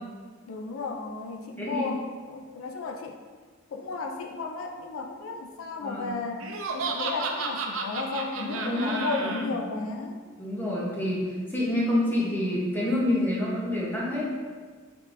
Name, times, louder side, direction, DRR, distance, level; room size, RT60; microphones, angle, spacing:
voice 1, 0.5-3.1 3.7-6.4 6.7-10.2, left 3 dB, 85° left, 3 dB, 0.4 m, -34 dB
voice 2, 1.6-1.9 5.8-6.1 8.4-8.9 9.2-9.6 10.4-14.3, left 1 dB, 10° left, -6 dB, 0.9 m, -28 dB
Laughter, 6.4-9.4, right 4 dB, 85° right, 0.5 m, -32 dB
5.2 x 3.6 x 2.6 m, 1.5 s
head